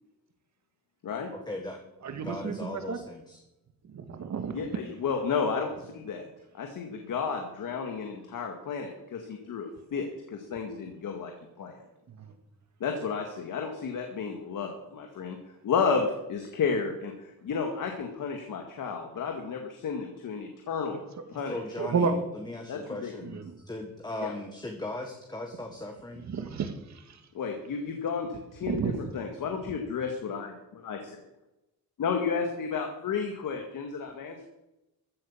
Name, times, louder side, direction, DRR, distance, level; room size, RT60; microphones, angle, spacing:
voice 1, 1.5-1.8 2.2-3.4 21.4-23.4 23.7-26.2, left 2 dB, 10° left, 2 dB, 1.7 m, -38 dB
voice 2, 2.0-3.0 3.8-4.7 12.1-12.3 21.8-22.2 23.2-23.6 26.3-27.2 28.7-29.0, right 5 dB, 50° right, 8 dB, 2.0 m, -31 dB
voice 3, 4.5-6.2 6.5-11.3 11.6-11.8 12.8-15.4 15.6-21.0 21.3-21.6 22.7-23.1 24.2-24.3 27.3-31.3 32.0-34.4, left 5 dB, 65° left, 4 dB, 2.0 m, -32 dB
14.5 x 8.6 x 7.3 m, 0.94 s
cardioid pair, 130°, 34 cm